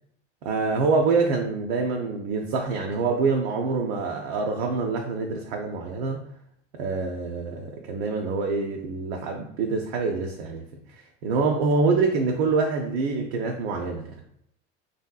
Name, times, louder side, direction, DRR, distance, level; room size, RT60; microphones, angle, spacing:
voice 1, 0.4-6.2 6.7-10.6 11.2-14.1, right 4 dB, 60° right, 1 dB, 0.5 m, -25 dB
3.1 x 2.7 x 2.2 m, 0.72 s
hypercardioid pair, 75°, 35 cm